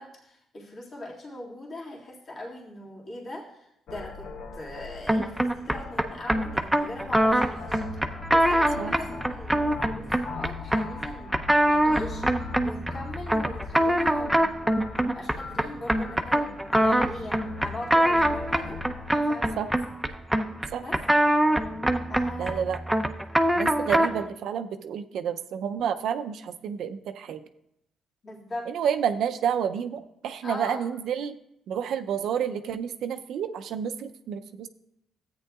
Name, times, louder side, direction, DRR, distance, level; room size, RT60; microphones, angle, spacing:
voice 1, 0.0-7.8 8.3-11.4 11.6-14.5 14.9-18.8 19.1-19.6 20.8-21.0 22.1-22.7 24.0-24.1 28.2-28.7 30.4-30.9, left 1 dB, 50° left, -5 dB, 2.1 m, -40 dB
sound 1, 3.9-19.1, left 4 dB, 75° left, 0.8 m, -41 dB
sound 2, 5.1-24.3, right 1 dB, 5° right, 0.6 m, -24 dB
voice 2, 22.4-23.0 23.6-27.4 28.7-31.3 31.7-34.7, right 8 dB, 75° right, 8 dB, 0.5 m, -30 dB
13.5 x 8.6 x 2.4 m, 0.79 s
cardioid pair, 90°, 0 cm